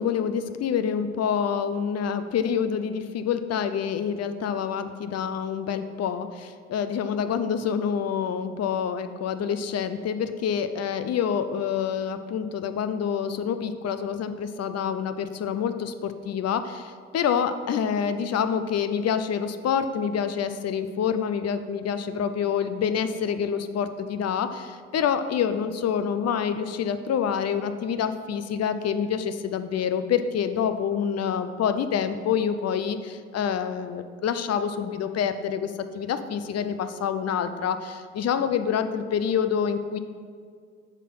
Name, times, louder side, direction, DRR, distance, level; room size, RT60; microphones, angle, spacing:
voice 1, 0.0-40.0, left 7 dB, 55° left, 10 dB, 0.6 m, -27 dB
8.2 x 3.8 x 5.9 m, 2.1 s
cardioid pair, 90°, 30 cm